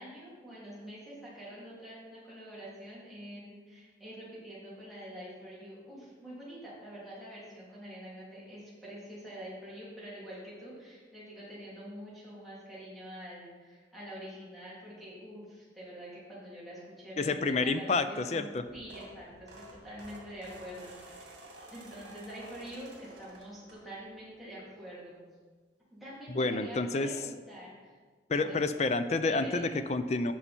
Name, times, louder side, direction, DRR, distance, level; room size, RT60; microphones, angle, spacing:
voice 1, 0.0-25.2 25.9-28.0 28.3-28.7 29.2-29.7, equal, ahead, -9 dB, 3.0 m, -46 dB
voice 2, 17.2-18.6 26.3-27.1 28.3-30.3, left 3 dB, 35° left, 11 dB, 0.4 m, -29 dB
sound 1, 18.5-24.2 24.6-24.9 26.1-26.2 26.5-26.6 26.9-27.1, right 1 dB, 75° right, 2.1 m, -51 dB
11.0 x 5.6 x 4.4 m, 1.5 s
head